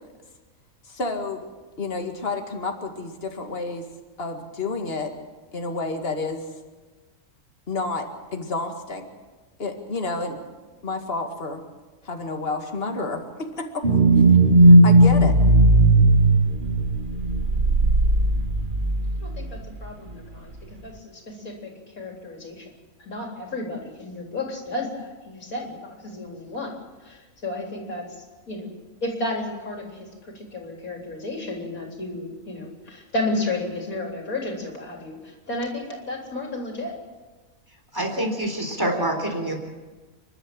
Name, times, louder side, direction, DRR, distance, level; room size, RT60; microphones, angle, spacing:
voice 1, 0.8-1.5 1.8-3.9 4.2-5.2 5.5-6.5 7.7-9.1 9.6-10.4 10.8-11.6 12.0-13.8 14.6-15.4, left 3 dB, 40° left, 4 dB, 2.3 m, -30 dB
sound 1, 13.8-19.5 19.8-19.9, right 2 dB, 40° right, 1.2 m, -16 dB
voice 2, 19.2-22.7 23.1-26.8 27.0-28.1 28.5-28.7 29.0-37.0, left 2 dB, 70° left, 1 dB, 4.2 m, -32 dB
voice 3, 37.9-39.6, right 1 dB, 15° right, 2 dB, 3.9 m, -26 dB
30.0 x 12.0 x 7.6 m, 1.3 s
omnidirectional pair, 1.5 m